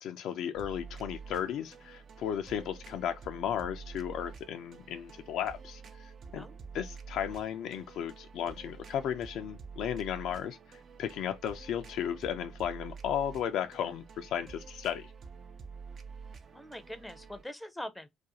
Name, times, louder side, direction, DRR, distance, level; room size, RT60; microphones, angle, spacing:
voice 1, 0.0-6.4 6.7-15.1, left 9 dB, 65° left, 0.3 m, -35 dB
sound 1, 0.5-17.4, right 5 dB, 45° right, 0.4 m, -48 dB
voice 2, 16.5-18.1, left 1 dB, 10° left, 0.5 m, -43 dB
2.4 x 2.2 x 2.7 m
hypercardioid pair, 50°, 0 cm